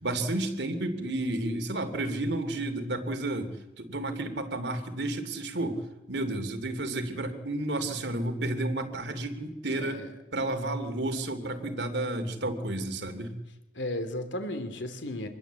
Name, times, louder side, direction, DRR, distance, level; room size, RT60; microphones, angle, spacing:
voice 1, 0.0-5.8 6.1-10.1 10.3-13.3, right 2 dB, 75° right, 7 dB, 2.9 m, -31 dB
voice 2, 9.7-10.1 13.7-15.3, left 1 dB, 85° left, 8 dB, 2.9 m, -34 dB
26.0 x 20.5 x 8.3 m, 1.0 s
head